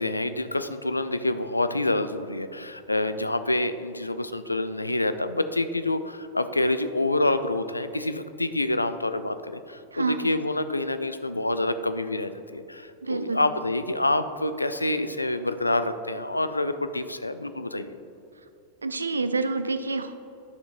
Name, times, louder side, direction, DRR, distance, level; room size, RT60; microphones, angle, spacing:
voice 1, 0.0-18.0, left 2 dB, 85° left, 10 dB, 0.3 m, -27 dB
voice 2, 13.0-13.4 18.8-20.1, right 3 dB, 75° right, 10 dB, 0.4 m, -27 dB
11.0 x 6.5 x 2.5 m, 2.8 s
figure-of-eight pair, 90°, 0 cm